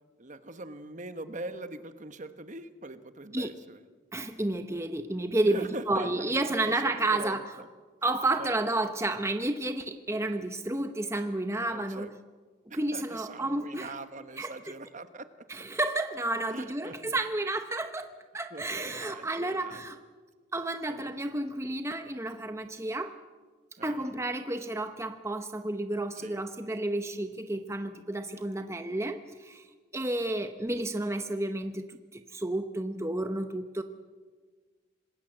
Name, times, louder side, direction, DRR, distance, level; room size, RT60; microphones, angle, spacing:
voice 1, 0.2-3.8 5.5-7.7 8.4-8.6 11.7-12.1 12.7-15.3 16.5-17.2 18.5-19.8 20.9-21.1 23.8-24.1 26.2-26.4 30.2-30.3, right 2 dB, 40° right, 10 dB, 1.1 m, -42 dB
voice 2, 4.1-7.4 8.0-12.1 12.7-13.9 14.4-14.5 15.5-20.0 20.5-23.2 23.8-29.6 29.9-33.8, right 2 dB, 15° right, 7 dB, 0.9 m, -31 dB
26.0 x 20.0 x 7.9 m, 1.4 s
head